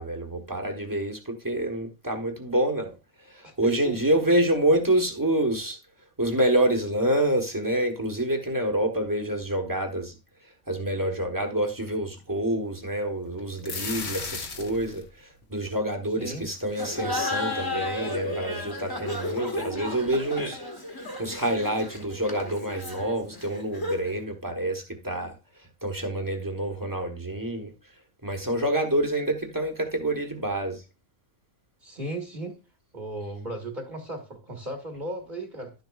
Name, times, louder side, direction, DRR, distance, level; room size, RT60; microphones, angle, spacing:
voice 1, 0.0-2.9 3.3-5.8 6.2-10.1 10.7-20.6 21.2-25.3 25.8-27.7 28.2-30.8, right 1 dB, 15° right, 1.2 m, -27 dB
voice 2, 3.4-4.0 16.1-16.5 31.8-32.6 32.9-35.7, right 2 dB, 35° right, 1.5 m, -36 dB
sound 1, 13.4-15.1, left 4 dB, 50° left, 1.3 m, -35 dB
Laughter, 16.7-24.2, left 2 dB, 15° left, 1.1 m, -33 dB
11.5 x 6.7 x 2.4 m
omnidirectional pair, 1.5 m